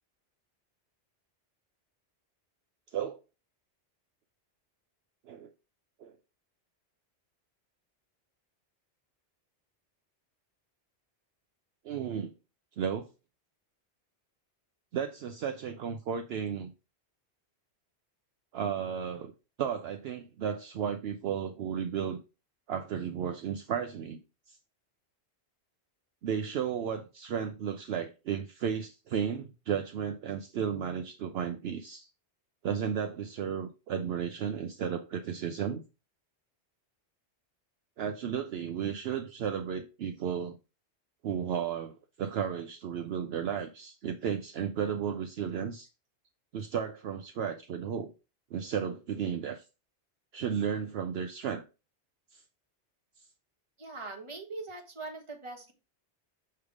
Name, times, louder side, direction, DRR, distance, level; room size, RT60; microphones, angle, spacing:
voice 1, 11.8-12.3 12.8-13.1 14.9-16.7 18.5-19.3 19.6-22.2 22.7-24.2 24.5-24.6 26.2-32.1 32.6-35.8 38.0-40.6 41.2-45.9 46.5-48.1 48.5-49.6 50.3-51.6 52.3-52.4, right 8 dB, 65° right, 0.8 m, -34 dB
voice 2, 53.8-55.7, right 3 dB, 25° right, 1.4 m, -41 dB
6.8 x 3.4 x 4.8 m
omnidirectional pair, 1.2 m